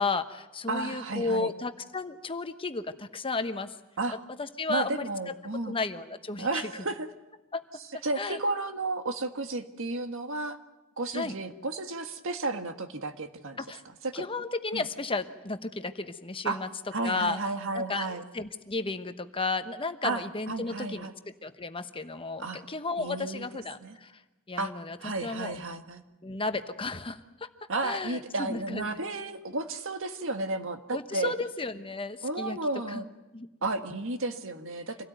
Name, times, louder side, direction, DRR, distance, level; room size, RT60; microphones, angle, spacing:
voice 1, 0.0-3.7 4.4-5.3 5.7-6.7 7.5-7.6 8.2-8.4 11.1-11.3 13.6-13.8 14.1-16.7 17.0-17.4 17.7-21.1 21.4-24.1 24.5-25.6 26.2-27.5 27.8-28.2 28.5-28.8 30.9-32.6 32.9-33.0 33.3-33.5, left 3 dB, 25° left, 9 dB, 1.1 m, -33 dB
voice 2, 0.7-1.5 4.0-4.2 4.7-5.7 6.4-7.1 8.0-10.6 11.0-13.6 14.0-14.3 14.7-14.8 16.4-16.6 16.9-18.2 20.0-21.1 22.4-22.6 23.0-23.5 23.8-24.0 24.6-24.7 25.0-26.0 27.7-31.3 32.2-33.1 33.6-35.0, right 2 dB, 65° right, 7 dB, 1.8 m, -33 dB
26.5 x 17.5 x 9.3 m, 1.1 s
head